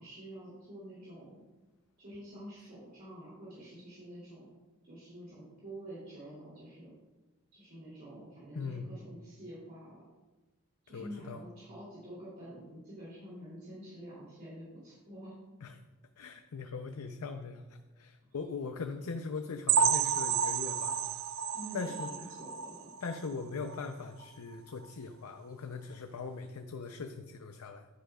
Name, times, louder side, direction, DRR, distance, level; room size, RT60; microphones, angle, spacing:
voice 1, 0.0-1.4 2.0-4.5 4.8-6.9 7.5-10.0 10.8-15.3 18.3-18.4 21.5-22.9, right 1 dB, 45° right, -9 dB, 2.8 m, -48 dB
voice 2, 8.5-8.9 10.9-11.4 15.6-15.8 16.2-21.0 21.7-22.1 23.0-27.9, left 4 dB, 85° left, 6 dB, 0.5 m, -40 dB
sound 1, 19.7-23.3 23.7-23.9 24.2-24.3 24.8-24.9, right 7 dB, 60° right, 0.3 m, -31 dB
10.0 x 9.8 x 2.3 m, 1.2 s
head